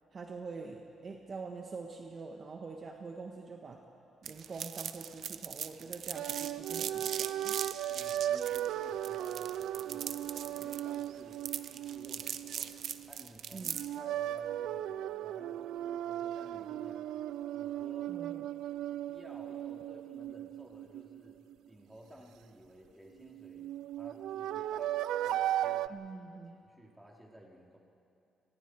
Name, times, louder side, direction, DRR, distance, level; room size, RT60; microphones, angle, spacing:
voice 1, 0.1-3.8 4.2-7.6 13.5-13.8 18.1-18.5 25.9-26.6, right 4 dB, 45° right, 3 dB, 1.5 m, -45 dB
sound 1, 4.2-14.0, right 8 dB, 65° right, 0.8 m, -40 dB
sound 2, 6.1-13.2 13.7-21.5 23.2-25.9, right 12 dB, 85° right, 0.4 m, -37 dB
voice 2, 7.9-11.4 11.7-12.7 13.1-17.1 17.5-18.1 18.9-21.4 21.7-23.7 24.0-25.0 25.2-26.0 26.3-27.8, right 1 dB, 10° right, -2 dB, 3.9 m, -55 dB
29.5 x 21.5 x 4.8 m, 2.7 s
cardioid pair, 90°, 0 cm